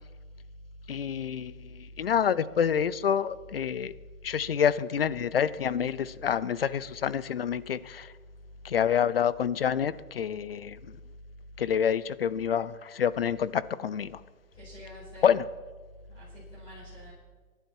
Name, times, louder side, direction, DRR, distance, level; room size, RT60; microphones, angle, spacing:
voice 1, 0.9-1.5 2.0-3.9 4.2-8.1 8.6-10.8 11.6-14.2 15.2-15.4, left 8 dB, 45° left, 0.5 m, -27 dB
voice 2, 14.6-15.4 16.1-17.1, left 1 dB, 10° left, 5.1 m, -46 dB
22.0 x 11.5 x 4.5 m
hypercardioid pair, 155°, 44 cm